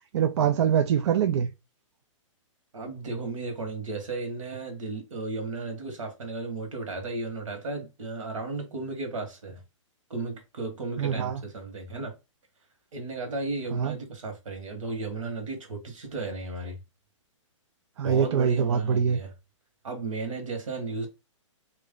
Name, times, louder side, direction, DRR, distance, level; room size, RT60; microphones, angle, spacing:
voice 1, 0.1-1.5 11.0-11.4 13.7-14.0 18.0-19.2, right 7 dB, 60° right, 0.4 m, -24 dB
voice 2, 2.7-9.6 10.1-12.2 12.9-16.8 18.0-19.3 19.8-21.1, right 3 dB, 75° right, 1.4 m, -34 dB
3.1 x 2.6 x 3.6 m
hypercardioid pair, 140°, 17 cm